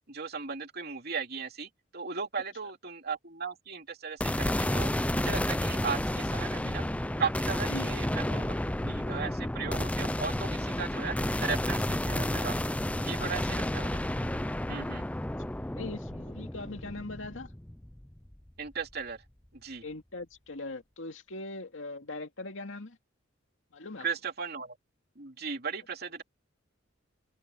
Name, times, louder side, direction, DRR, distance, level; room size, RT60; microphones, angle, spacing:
voice 1, 0.1-6.8 7.2-8.5 8.8-12.6 13.0-14.0 14.7-15.0 18.6-19.2 19.5-19.8 24.0-24.8 25.2-26.2, right 5 dB, 55° right, 3.1 m, -37 dB
sound 1, 4.2-18.5, left 1 dB, 5° left, 0.5 m, -31 dB
voice 2, 15.7-17.5 19.8-23.0 23.7-24.1, left 2 dB, 75° left, 2.4 m, -40 dB
open air
head